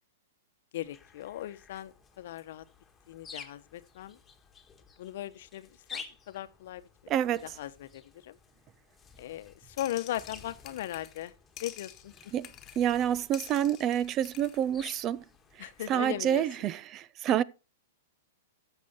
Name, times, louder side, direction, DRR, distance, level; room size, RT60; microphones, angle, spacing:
voice 1, 0.7-2.6 3.1-4.2 5.0-7.1 7.4-8.4 9.2-11.3 11.6-12.1 15.6-16.4, left 13 dB, 60° left, 1.0 m, -38 dB
sound 1, 0.8-16.2, left 5 dB, 15° left, 1.6 m, -52 dB
voice 2, 7.1-7.5 12.3-12.5 12.8-15.2 15.6-17.4, right 10 dB, 30° right, 0.5 m, -28 dB
sound 2, 9.8-11.3 11.6-13.0 13.3-14.7, left 12 dB, 30° left, 1.3 m, -49 dB
14.0 x 6.7 x 4.2 m
hypercardioid pair, 120°, 0 cm